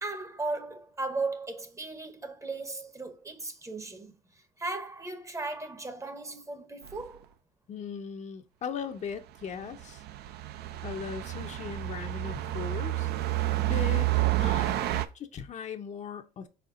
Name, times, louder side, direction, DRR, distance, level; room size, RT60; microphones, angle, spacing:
voice 1, 0.0-7.3, right 3 dB, 20° right, 0.7 m, -36 dB
sound 1, 6.9-7.0 9.6-15.1, right 16 dB, 70° right, 0.5 m, -29 dB
voice 2, 7.7-10.0 10.8-13.1 13.6-14.1 14.4-16.5, left 6 dB, 45° left, 0.6 m, -38 dB
4.6 x 4.3 x 2.5 m
cardioid pair, 110°, 17 cm